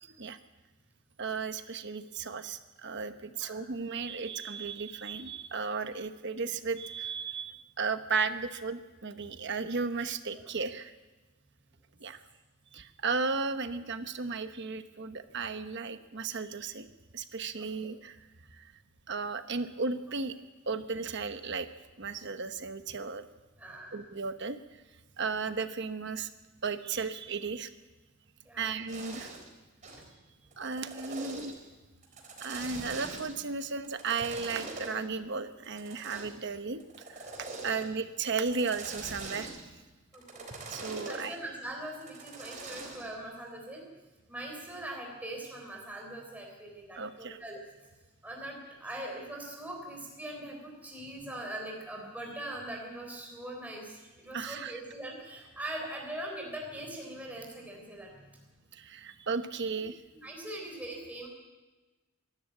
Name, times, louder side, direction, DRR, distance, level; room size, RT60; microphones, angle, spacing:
voice 1, 0.0-0.4 1.2-10.9 12.0-12.2 12.7-16.9 17.1-18.2 18.5-18.7 19.1-20.4 20.7-21.7 22.0-23.3 23.9-24.6 25.2-26.3 26.6-27.7 28.6-29.3 30.6-31.6 32.4-39.5 40.7-41.3 47.0-47.4 54.3-54.7 58.7-60.0, right 4 dB, 60° right, 9 dB, 1.1 m, -35 dB
voice 2, 17.6-17.9 23.6-24.0 28.5-28.7 37.6-37.7 40.1-40.5 41.1-43.9 44.3-47.6 48.2-58.4 60.2-61.3, right 1 dB, 10° right, 0 dB, 3.8 m, -42 dB
sound 1, 28.9-29.5 29.8-30.1 30.5-31.6 32.0-33.4 33.8-35.0 35.6-36.4 36.8-37.9 38.3-39.7 40.1-41.3 41.9-43.1, right 3 dB, 40° right, 4.0 m, -43 dB
24.0 x 13.0 x 8.7 m, 1.2 s
head